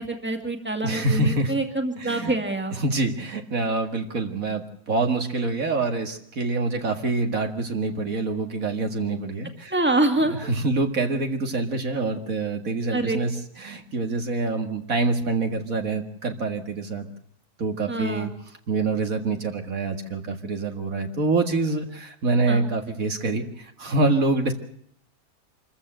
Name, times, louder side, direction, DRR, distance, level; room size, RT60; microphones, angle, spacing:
voice 1, 0.0-2.7 9.7-10.4 12.9-13.2 17.9-18.3 22.5-22.6, right 2 dB, 5° right, 4 dB, 2.3 m, -25 dB
voice 2, 0.8-1.5 2.0-2.3 2.7-9.7 10.2-13.3 13.6-17.1 17.6-18.3 18.7-24.5, right 3 dB, 65° right, 5 dB, 2.3 m, -26 dB
26.5 x 14.5 x 7.8 m, 0.69 s
omnidirectional pair, 1.6 m